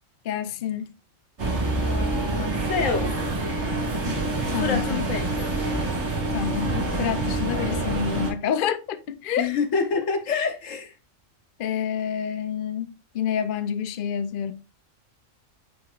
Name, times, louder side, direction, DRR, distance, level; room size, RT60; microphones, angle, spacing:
voice 1, 0.2-0.9 4.5-5.0 6.3-9.5 11.6-14.5, left 8 dB, 55° left, 0.7 m, -28 dB
sound 1, 1.4-8.3, right 2 dB, 60° right, 2.5 m, -26 dB
voice 2, 1.8-3.4 4.5-5.3 9.4-10.9, left 4 dB, 75° left, 1.5 m, -27 dB
9.3 x 4.7 x 2.5 m
omnidirectional pair, 1.3 m